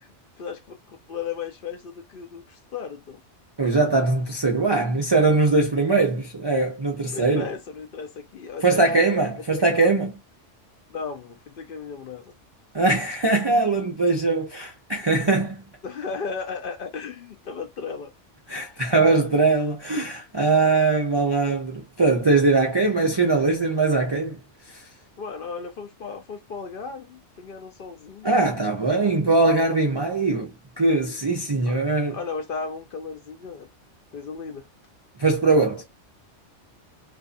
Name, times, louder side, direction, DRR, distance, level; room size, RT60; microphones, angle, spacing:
voice 1, 0.9-3.2 7.1-9.0 9.5-10.0 10.9-12.2 15.8-18.1 21.1-21.6 25.2-28.3 28.6-29.3 31.7-31.8 32.1-33.7 34.1-34.6, left 5 dB, 60° left, 0.6 m, -35 dB
voice 2, 3.6-7.5 8.6-10.2 12.7-15.7 18.5-24.4 24.7-24.9 28.2-32.2 35.2-35.8, right 3 dB, 45° right, 0.3 m, -21 dB
2.5 x 2.4 x 2.4 m
omnidirectional pair, 1.2 m